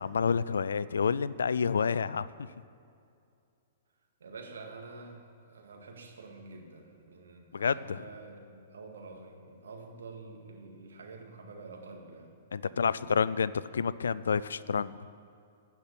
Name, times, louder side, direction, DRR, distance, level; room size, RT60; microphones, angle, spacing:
voice 1, 0.0-2.3 7.5-8.0 12.5-14.9, left 6 dB, 75° left, 18 dB, 0.4 m, -29 dB
voice 2, 4.2-5.2 5.5-12.3 12.6-13.1, right 3 dB, 70° right, 1 dB, 2.2 m, -48 dB
16.5 x 5.9 x 8.5 m, 2.4 s
figure-of-eight pair, 110°, 0 cm